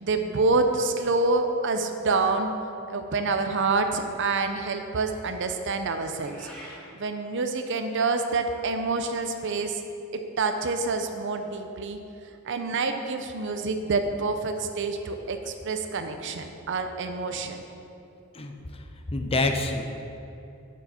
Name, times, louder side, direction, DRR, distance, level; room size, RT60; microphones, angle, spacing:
voice 1, 0.0-2.5 2.9-6.5 6.9-9.8 10.1-12.0 12.5-17.6, right 3 dB, 60° right, 6 dB, 0.6 m, -27 dB
Meow, 6.1-6.9, equal, 5° left, 1.5 m, -45 dB
voice 2, 18.3-19.8, left 2 dB, 25° left, 5 dB, 0.6 m, -28 dB
9.1 x 7.0 x 4.3 m, 2.8 s
head